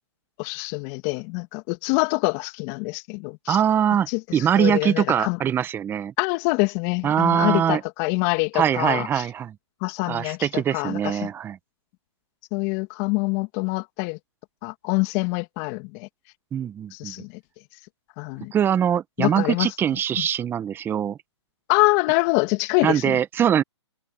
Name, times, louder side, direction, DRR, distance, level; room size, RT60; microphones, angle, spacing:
voice 1, 0.4-3.6 4.1-4.2 4.6-5.4 6.2-9.1 9.8-11.3 12.5-14.2 14.6-16.1 16.9-17.3 18.2-18.5 19.2-19.7 20.2-20.3 21.7-23.2, left 28 dB, 30° left, 2.5 m, -25 dB
voice 2, 3.5-6.1 7.0-7.8 8.5-9.5 10.1-11.6 16.5-17.1 18.5-21.2 22.8-23.6, right 9 dB, 15° right, 1.6 m, -22 dB
hypercardioid pair, 140°, 15 cm